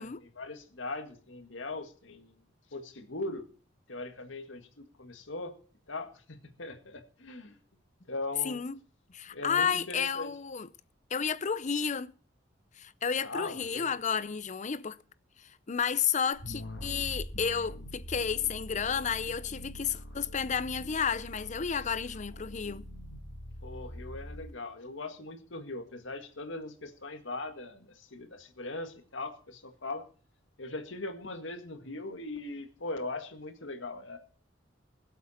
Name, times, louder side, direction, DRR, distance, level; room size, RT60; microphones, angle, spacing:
voice 1, 0.0-2.4 2.7-3.5 3.9-5.5 5.9-7.6 8.1-8.6 9.3-10.3 13.2-13.9 23.6-30.0 30.6-34.2, left 2 dB, 85° left, 1.9 m, -40 dB
voice 2, 9.1-10.7 11.1-12.1 12.8-15.0 15.7-22.8, left 6 dB, 40° left, 0.6 m, -31 dB
sound 1, 16.4-24.5, equal, 65° left, 3.1 m, -43 dB
21.0 x 8.1 x 4.3 m
head